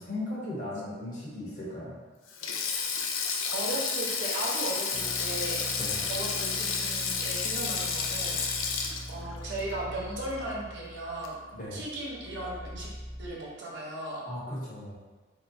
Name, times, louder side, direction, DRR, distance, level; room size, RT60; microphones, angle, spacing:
voice 1, 0.0-2.0 5.8-6.1 11.5-11.8 14.3-15.0, left 1 dB, 40° left, -6 dB, 1.0 m, -37 dB
Sink (filling or washing), 2.3-10.7 11.0-11.3 12.4-12.7, left 5 dB, 85° left, 0.4 m, -31 dB
voice 2, 3.5-5.7 6.1-8.5 9.1-11.4 11.7-12.9 13.2-14.2, right 1 dB, 60° right, -4 dB, 0.7 m, -36 dB
sound 1, 4.9-13.3, equal, 20° left, 0.5 m, -43 dB
3.1 x 2.8 x 2.6 m, 1.3 s
head